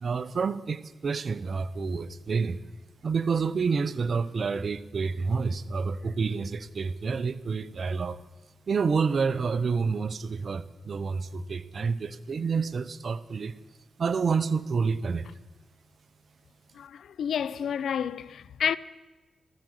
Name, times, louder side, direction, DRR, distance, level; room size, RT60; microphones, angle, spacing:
voice 1, 0.0-2.6 3.0-8.2 8.7-13.6 14.0-15.3, right 5 dB, 60° right, 0.8 m, -28 dB
voice 2, 16.7-18.8, left 8 dB, 80° left, 0.6 m, -30 dB
15.0 x 15.0 x 6.5 m
cardioid pair, 65°, 0 cm